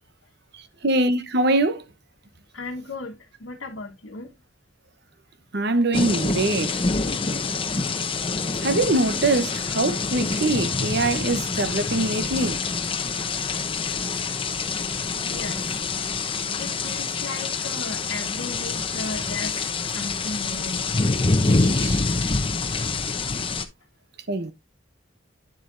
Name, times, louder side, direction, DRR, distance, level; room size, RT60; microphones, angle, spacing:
voice 1, 0.8-1.8 5.5-6.8 8.6-12.6 21.4-22.1 24.3-24.5, right 2 dB, 55° right, 1.0 m, -23 dB
voice 2, 2.5-4.3 15.2-15.6 16.6-19.6 19.9-20.9, left 3 dB, 90° left, 1.3 m, -35 dB
sound 1, 5.9-23.7, left 4 dB, 30° left, 0.8 m, -26 dB
10.0 x 7.2 x 2.5 m
head